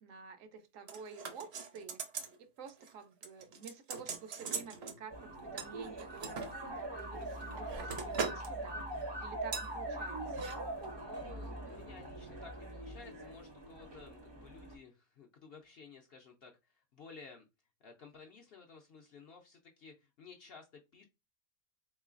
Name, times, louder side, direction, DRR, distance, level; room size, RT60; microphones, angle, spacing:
voice 1, 0.0-2.1 2.4-8.9 9.2-10.5, right 6 dB, 75° right, 1.0 m, -50 dB
sound 1, 0.9-2.4 2.7-2.9 3.2-5.0 5.6-6.5 7.1-8.5 8.8-9.0 9.5-9.7 10.3-10.6 10.8-10.9, right 5 dB, 55° right, 0.8 m, -41 dB
sound 2, 5.1-14.8, right 1 dB, 30° right, 0.5 m, -42 dB
voice 2, 11.0-17.5 17.8-21.0, left 5 dB, 65° left, 0.6 m, -55 dB
3.6 x 3.1 x 2.4 m
omnidirectional pair, 1.4 m